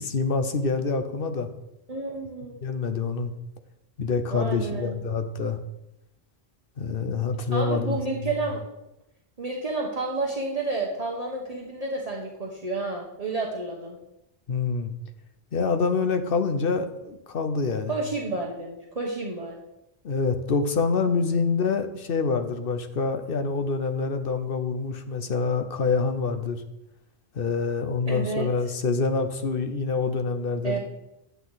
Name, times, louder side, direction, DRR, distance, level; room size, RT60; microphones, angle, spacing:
voice 1, 0.0-1.5 2.6-3.3 4.0-5.6 6.8-8.0 14.5-14.9 15.5-17.9 20.0-26.6 27.3-30.8, left 4 dB, 60° left, 8 dB, 1.0 m, -26 dB
voice 2, 1.9-2.5 4.3-5.0 7.5-8.6 9.4-14.0 17.9-19.6 28.1-28.5 30.6-30.8, right 3 dB, 40° right, -2 dB, 1.2 m, -30 dB
9.5 x 8.2 x 4.0 m, 0.89 s
omnidirectional pair, 1.1 m